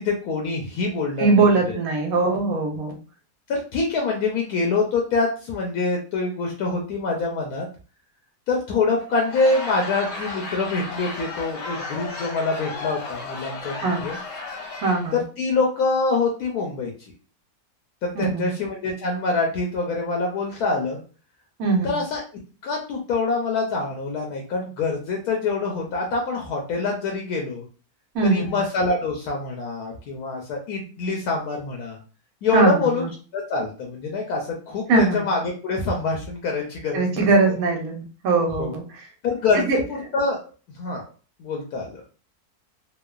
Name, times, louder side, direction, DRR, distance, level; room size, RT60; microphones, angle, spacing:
voice 1, 0.0-1.8 3.5-7.7 8.5-13.7 14.0-14.2 15.1-16.9 18.0-21.0 21.8-22.2 22.6-27.7 28.2-32.0 32.4-33.1 33.3-37.3 38.6-38.7 39.2-40.4 40.7-41.0 41.4-42.0, left 3 dB, 80° left, 0 dB, 1.1 m, -25 dB
voice 2, 1.2-3.0 13.8-14.0 14.8-15.2 18.1-18.5 21.6-22.0 28.1-28.6 32.5-33.1 34.9-35.3 36.9-39.0 39.7-39.8, right 3 dB, 70° right, 3 dB, 1.1 m, -21 dB
Laughter / Crowd, 9.0-15.2, left 3 dB, 60° left, 0.8 m, -34 dB
2.9 x 2.1 x 2.3 m, 0.36 s
omnidirectional pair, 1.6 m